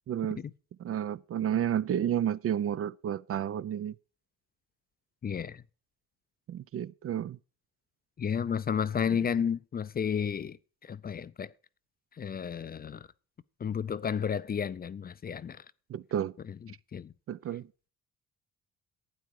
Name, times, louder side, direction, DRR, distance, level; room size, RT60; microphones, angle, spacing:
voice 1, 0.1-0.4 0.8-3.9 6.5-7.4 15.9-16.3 17.3-17.7, right 10 dB, 50° right, 0.5 m, -31 dB
voice 2, 5.2-5.6 8.2-10.6 10.8-11.5 12.2-13.1 13.6-15.6 16.4-17.1, left 7 dB, 30° left, 0.5 m, -32 dB
12.0 x 8.7 x 4.7 m
cardioid pair, 90°, 30 cm